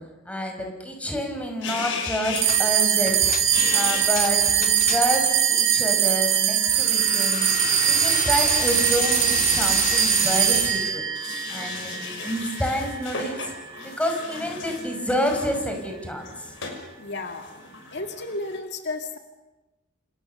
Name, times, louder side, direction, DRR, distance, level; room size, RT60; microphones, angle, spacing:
voice 1, 0.3-3.2 3.7-7.5 7.9-11.0 11.5-16.3, equal, 5° left, 3 dB, 5.4 m, -28 dB
sound 1, 1.6-2.6 3.5-4.2 7.0-7.1 7.5-7.7 8.2-8.3 9.8-9.9 10.5-18.6, left 4 dB, 80° left, 6.0 m, -36 dB
sound 2, 2.4-13.0, right 9 dB, 80° right, 2.2 m, -22 dB
sound 3, 2.5-2.7 3.1-5.3 6.7-11.0, left 7 dB, 45° left, 1.5 m, -31 dB
voice 2, 17.0-17.5 17.9-19.2, left 2 dB, 60° left, 5 dB, 2.1 m, -32 dB
29.5 x 27.0 x 6.8 m, 1.1 s
head